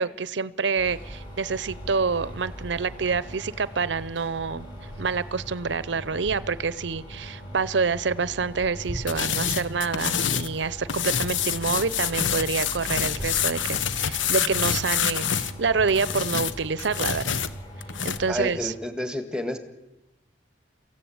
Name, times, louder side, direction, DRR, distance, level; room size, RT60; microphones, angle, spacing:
voice 1, 0.0-4.7 5.0-17.4 18.0-18.7, right 5 dB, 70° right, 18 dB, 0.7 m, -27 dB
sound 1, 0.8-18.7, equal, 25° left, 7.3 m, -40 dB
sound 2, 9.1-10.5 10.9-15.5 15.9-18.2, left 8 dB, 90° left, 1.0 m, -27 dB
voice 2, 18.3-19.6, left 1 dB, 5° right, 8 dB, 1.8 m, -30 dB
24.0 x 15.5 x 8.7 m, 0.98 s
head